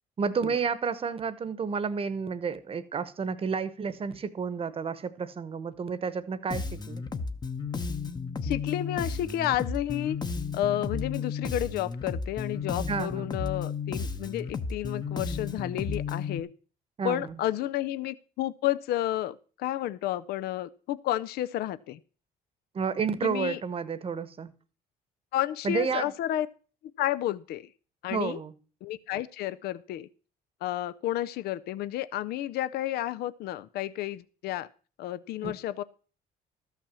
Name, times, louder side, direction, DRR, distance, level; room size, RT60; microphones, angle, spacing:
voice 1, 0.2-7.0 12.9-13.3 17.0-17.4 22.7-24.5 25.6-26.1 28.1-28.5 35.4-35.5, right 5 dB, 35° right, 14 dB, 1.0 m, -31 dB
Bass guitar, 6.5-16.4, left 5 dB, 25° left, 0.9 m, -33 dB
voice 2, 8.4-10.2 10.5-16.5 17.0-22.0 23.2-23.6 25.3-26.5 27.0-27.7 28.0-28.4 28.8-30.1 30.6-34.7 35.0-35.8, left 13 dB, 70° left, 17 dB, 0.5 m, -31 dB
13.0 x 5.8 x 6.8 m, 0.39 s
cardioid pair, 110°, 17 cm